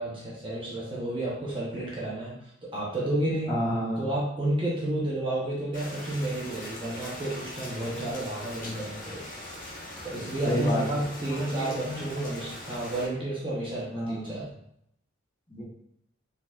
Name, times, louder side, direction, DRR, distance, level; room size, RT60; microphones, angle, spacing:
voice 1, 0.0-2.3 2.6-3.5 4.0-9.3 10.0-14.5, right 1 dB, 25° right, -6 dB, 0.9 m, -31 dB
voice 2, 3.5-4.0 10.4-12.2 13.9-14.4 15.5-15.6, equal, 20° left, -7 dB, 1.5 m, -31 dB
Rain, 5.7-13.1, left 1 dB, 45° left, 1.3 m, -41 dB
4.3 x 4.0 x 2.4 m, 0.75 s
head